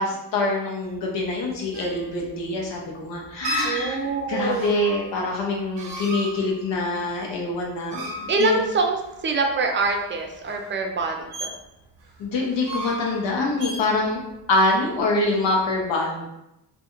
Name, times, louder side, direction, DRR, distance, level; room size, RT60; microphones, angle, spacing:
voice 1, 0.0-4.0 4.3-8.6 12.2-14.2 14.5-16.3, left 2 dB, 90° left, -2 dB, 0.6 m, -25 dB
sound 1, 0.9-15.8, right 1 dB, 90° right, 0.6 m, -36 dB
voice 2, 3.6-4.8 8.3-9.0 9.2-11.5, right 4 dB, 30° right, 2 dB, 0.4 m, -25 dB
2.3 x 2.2 x 2.9 m, 0.88 s
cardioid pair, 80°, 42 cm